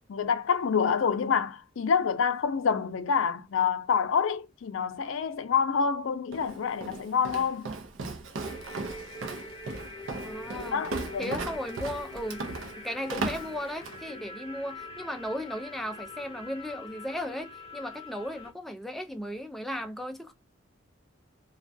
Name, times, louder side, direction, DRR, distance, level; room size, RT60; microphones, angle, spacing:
voice 1, 0.1-7.7 10.5-11.4, left 6 dB, 85° left, 0.4 m, -27 dB
Walk footsteps, 6.3-14.1, right 3 dB, 85° right, 0.5 m, -37 dB
sound 1, 8.4-18.5, left 2 dB, 30° left, 0.6 m, -44 dB
voice 2, 10.2-10.8 11.2-12.4 12.8-20.3, equal, ahead, 0.3 m, -36 dB
2.3 x 2.2 x 2.5 m
head